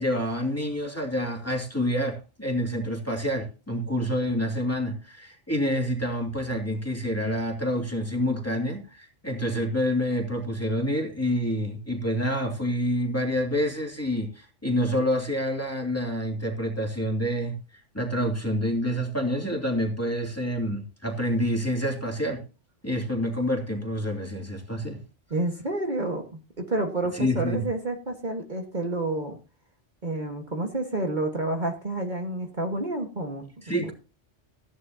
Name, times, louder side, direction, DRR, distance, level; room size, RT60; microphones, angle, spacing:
voice 1, 0.0-17.6 17.9-22.4 22.8-25.0 27.1-27.6 33.6-33.9, equal, 10° left, 1 dB, 2.9 m, -27 dB
voice 2, 25.3-29.4 30.0-33.9, right 2 dB, 40° right, 2 dB, 1.8 m, -29 dB
16.0 x 11.0 x 2.8 m, 0.32 s
omnidirectional pair, 1.2 m